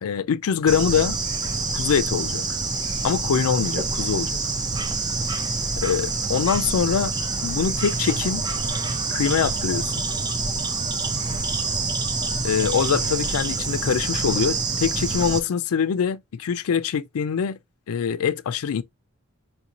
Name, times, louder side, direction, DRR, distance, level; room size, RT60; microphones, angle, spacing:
voice 1, 0.0-1.2 1.7-2.5 3.0-4.4 5.8-7.1 7.4-8.4 9.1-10.0 12.4-17.6 17.9-18.8, left 7 dB, 70° left, 0.4 m, -24 dB
Bird / Insect, 0.7-15.4, right 3 dB, 20° right, 0.4 m, -26 dB
sound 1, 7.9-13.6, left 1 dB, 80° right, 2.8 m, -43 dB
4.4 x 2.6 x 2.9 m
head